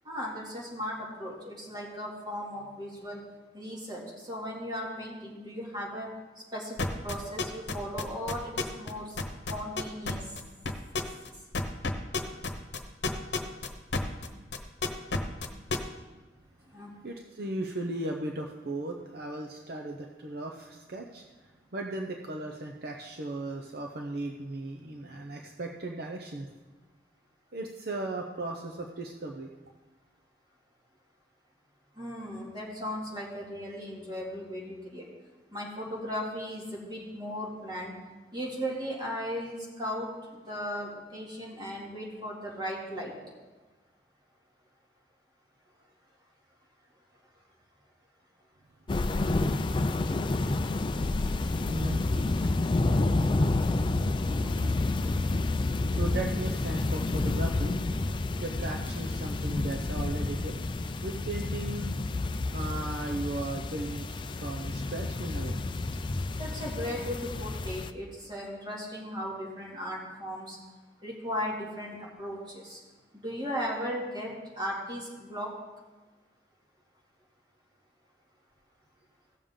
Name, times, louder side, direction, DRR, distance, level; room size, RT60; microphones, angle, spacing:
voice 1, 0.0-3.2 3.5-6.1 6.5-9.2 9.5-10.2 16.7-16.9 32.0-35.0 35.5-37.9 38.3-43.1 54.3-54.7 66.4-70.6 71.0-72.8 73.1-75.5, equal, 25° right, -4 dB, 2.5 m, -37 dB
sound 1, 6.8-8.9 9.2-14.3 14.5-15.8, left 3 dB, 80° left, 0.9 m, -30 dB
voice 2, 17.0-26.5 27.5-29.5 49.9-50.1 51.3-52.5 55.9-57.8 58.4-60.6 61.0-62.0 62.5-65.6, right 2 dB, 60° right, 1 dB, 0.7 m, -37 dB
sound 2, 48.9-67.9, left 2 dB, 30° left, 0.4 m, -29 dB
16.0 x 7.1 x 3.7 m, 1.2 s
head